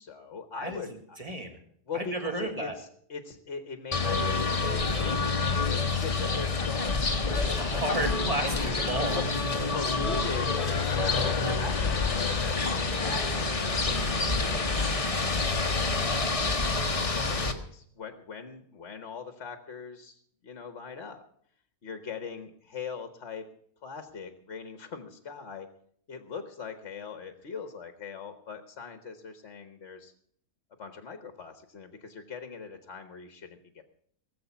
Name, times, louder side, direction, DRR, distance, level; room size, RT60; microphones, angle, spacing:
voice 1, 0.0-1.2 1.9-5.3 5.8-8.1 9.1-9.2 9.7-14.9 15.2-15.9 16.9-21.2 21.8-23.4 23.8-25.7 26.1-30.1 30.8-33.8, left 5 dB, 50° left, 8 dB, 1.3 m, -41 dB
voice 2, 1.2-1.6 1.9-2.7 7.3-9.2, right 1 dB, 25° right, 4 dB, 2.1 m, -33 dB
sound 1, 3.9-17.5, left 3 dB, 25° left, 1.0 m, -28 dB
Race car auto racing, 6.1-16.1, left 9 dB, 80° left, 1.3 m, -41 dB
18.5 x 7.6 x 7.0 m, 0.63 s
omnidirectional pair, 1.7 m